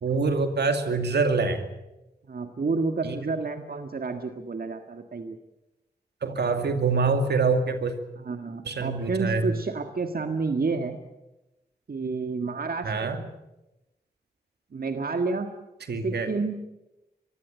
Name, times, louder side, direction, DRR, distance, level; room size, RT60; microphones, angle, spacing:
voice 1, 0.0-1.6 3.0-3.2 6.2-7.9 8.7-9.4 12.8-13.2 15.9-16.3, right 4 dB, 80° right, 7 dB, 2.4 m, -25 dB
voice 2, 2.3-5.4 8.2-11.0 11.9-13.1 14.7-15.5 16.0-16.6, right 4 dB, 60° right, 6 dB, 1.8 m, -30 dB
23.5 x 15.5 x 9.2 m, 0.96 s
cardioid pair, 45°, 17 cm